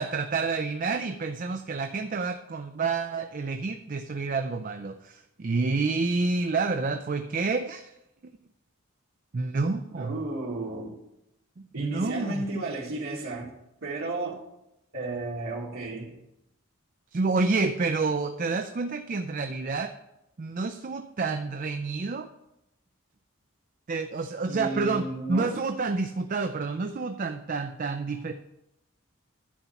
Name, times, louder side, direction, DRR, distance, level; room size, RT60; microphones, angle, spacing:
voice 1, 0.0-7.9 8.2-8.4 9.3-10.2 11.8-12.4 17.1-19.9 20.4-22.3 23.9-28.3, right 4 dB, 40° right, 7 dB, 0.4 m, -29 dB
voice 2, 10.0-11.0 11.7-13.5 13.8-14.4 14.9-16.2 24.5-25.6, right 2 dB, 85° right, -5 dB, 1.8 m, -33 dB
10.5 x 4.2 x 7.1 m, 0.86 s
head